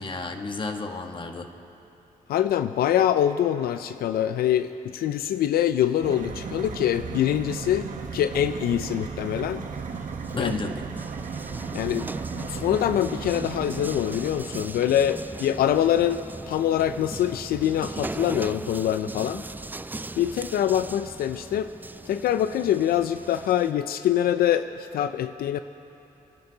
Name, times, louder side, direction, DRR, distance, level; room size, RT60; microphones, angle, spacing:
voice 1, 0.0-1.5 10.3-10.9, left 3 dB, 35° left, 5 dB, 1.2 m, -31 dB
voice 2, 2.3-9.7 10.3-10.6 11.7-12.1 12.3-19.5 20.2-21.7 22.1-25.6, left 10 dB, 85° left, 11 dB, 0.4 m, -24 dB
sound 1, 6.0-14.6, right 5 dB, 60° right, 1.3 m, -35 dB
sound 2, 9.0-23.7, right 2 dB, 10° right, 0.4 m, -39 dB
29.0 x 11.0 x 3.9 m, 2.9 s
cardioid pair, 85°, 15 cm